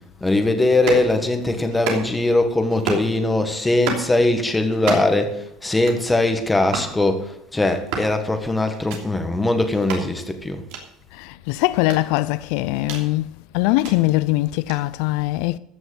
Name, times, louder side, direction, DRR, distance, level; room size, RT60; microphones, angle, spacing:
voice 1, 0.2-10.6, left 2 dB, 10° left, 1.6 m, -21 dB
sound 1, 0.7-1.1 1.7-2.3 2.7-3.1 3.7-4.1 4.7-5.2 5.7-6.1 6.7-6.9 7.7-8.1 8.7-9.0 9.7-10.0 10.7-10.8 11.7-13.1 13.7-13.9 14.7-14.8, right 5 dB, 75° right, 3.0 m, -30 dB
voice 2, 11.1-15.6, left 18 dB, 75° left, 0.4 m, -22 dB
15.0 x 6.2 x 7.7 m
cardioid pair, 140°, 0 cm